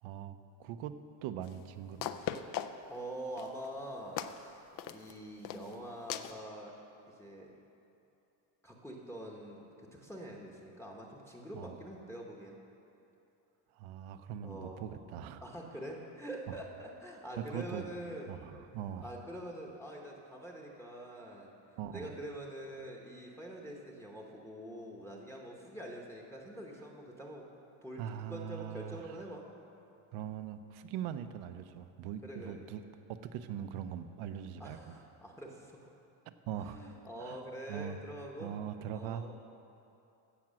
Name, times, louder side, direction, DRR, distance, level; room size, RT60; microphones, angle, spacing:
voice 1, 0.0-0.9 1.2-2.1 11.5-11.8 13.7-15.4 16.5-16.6 17.4-17.8 18.3-19.1 21.8-22.1 28.0-29.2 30.1-32.8 33.2-35.0 36.3-36.8 37.2-37.4 37.7-38.0 38.4-39.2, right 9 dB, 85° right, 9 dB, 0.8 m, -41 dB
sound 1, 1.5-1.6 2.0-3.0 3.4-3.7 4.2-4.4 4.8-5.1 5.4-5.7 6.1-6.4, left 10 dB, 45° left, 0.4 m, -38 dB
voice 2, 2.9-6.7 7.1-7.5 8.6-12.6 14.4-14.8 15.4-18.4 19.0-27.5 27.8-28.0 28.3-29.5 32.2-32.6 34.6-35.7 36.6-38.5 38.9-39.4, right 1 dB, 5° left, -1 dB, 0.9 m, -45 dB
15.5 x 6.0 x 7.5 m, 2.8 s
cardioid pair, 175°, 48 cm